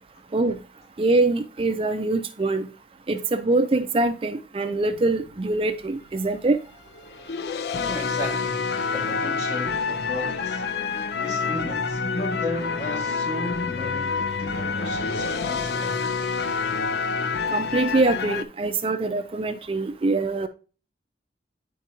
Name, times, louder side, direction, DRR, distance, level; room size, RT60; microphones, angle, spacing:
voice 1, 1.0-2.7 3.1-6.6 17.5-20.5, right 2 dB, 30° right, 0.4 m, -24 dB
sound 1, 4.9-6.1 6.9-18.4, left 5 dB, 65° left, 0.5 m, -28 dB
voice 2, 7.8-10.6 11.2-16.0, left 1 dB, 35° left, 1.7 m, -34 dB
9.7 x 4.5 x 2.7 m
head